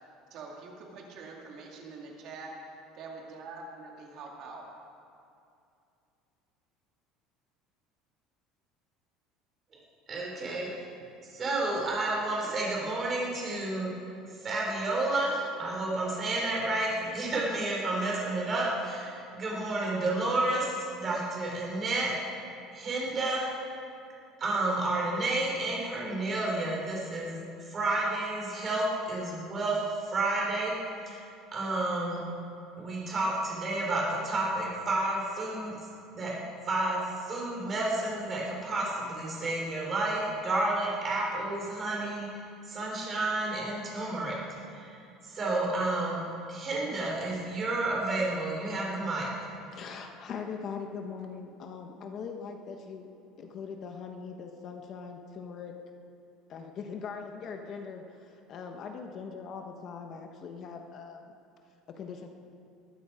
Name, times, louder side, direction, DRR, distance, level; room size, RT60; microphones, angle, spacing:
voice 1, 0.3-2.5 2.9-4.6, right 4 dB, 50° right, -1 dB, 2.2 m, -44 dB
voice 2, 10.1-10.9 11.2-13.9 14.3-22.1 22.7-23.5 24.4-27.4 27.7-30.7 31.1-31.2 31.5-32.2 32.8-35.7 36.1-36.3 36.7-42.3 42.6-44.3 44.7-46.2 46.5-49.3, right 2 dB, 25° right, -3 dB, 4.5 m, -31 dB
voice 3, 49.7-53.1 53.4-55.7 56.5-61.4 62.0-62.3, left 5 dB, 35° left, 4 dB, 1.2 m, -41 dB
21.0 x 13.0 x 4.9 m, 2.6 s
cardioid pair, 165°, 0 cm